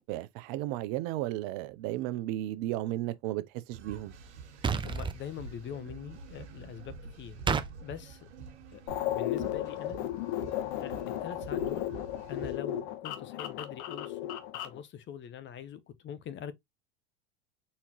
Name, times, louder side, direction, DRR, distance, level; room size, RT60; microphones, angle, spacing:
voice 1, 0.1-4.1, right 15 dB, 60° right, 0.6 m, -34 dB
sound 1, 3.7-12.6, right 5 dB, 80° right, 1.5 m, -48 dB
sound 2, 4.6-5.2 7.5-7.7, right 5 dB, 15° right, 0.5 m, -29 dB
voice 2, 4.8-7.4 7.8-8.3 8.7-8.8 9.1-10.0 10.8-11.9 12.3-16.5, left 9 dB, 35° left, 0.8 m, -43 dB
sound 3, 8.9-14.8, left 12 dB, 70° left, 1.1 m, -34 dB
4.4 x 3.6 x 2.9 m
hypercardioid pair, 95°, 33 cm